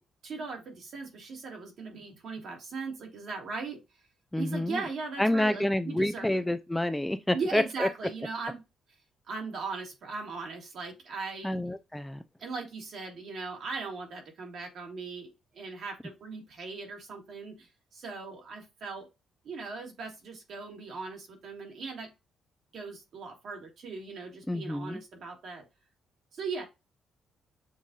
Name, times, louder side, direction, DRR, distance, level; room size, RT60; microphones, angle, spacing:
voice 1, 0.2-3.8 4.4-6.4 7.3-8.6 9.3-11.6 12.4-19.1 19.4-22.1 22.7-25.6 26.3-26.7, right 4 dB, 65° right, 1.8 m, -39 dB
voice 2, 4.3-4.8 5.2-7.9 11.4-12.2 24.5-25.0, left 1 dB, 5° left, 0.4 m, -28 dB
7.1 x 2.5 x 2.4 m
cardioid pair, 90°, 0 cm